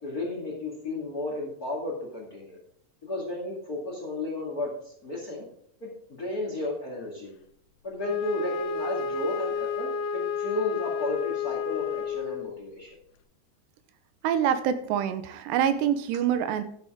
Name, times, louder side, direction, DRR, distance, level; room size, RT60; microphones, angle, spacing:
voice 1, 0.0-2.6 3.0-5.5 5.8-5.9 6.2-7.3 7.8-12.9, left 2 dB, 30° left, -1 dB, 2.1 m, -33 dB
Wind instrument woodwind instrument, 8.0-12.6, left 6 dB, 85° left, 2.9 m, -31 dB
voice 2, 14.2-16.6, right 9 dB, 85° right, 10 dB, 2.9 m, -25 dB
13.0 x 7.1 x 3.8 m, 0.65 s
omnidirectional pair, 4.9 m